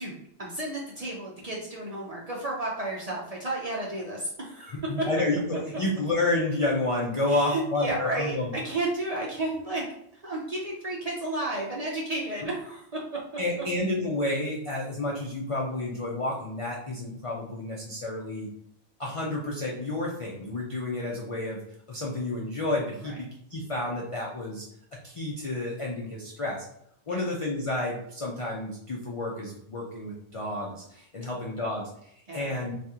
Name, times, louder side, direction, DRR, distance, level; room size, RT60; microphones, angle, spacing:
voice 1, 0.0-5.1 7.3-13.2 23.0-23.1 27.1-27.2 31.2-31.8 32.3-32.5, right 2 dB, 45° right, -4 dB, 0.5 m, -33 dB
voice 2, 4.9-8.5 13.4-18.5 19.0-21.6 21.9-24.6 25.0-26.7 27.1-32.7, left 2 dB, 55° left, -3 dB, 0.3 m, -30 dB
2.8 x 2.4 x 3.5 m, 0.72 s
omnidirectional pair, 1.3 m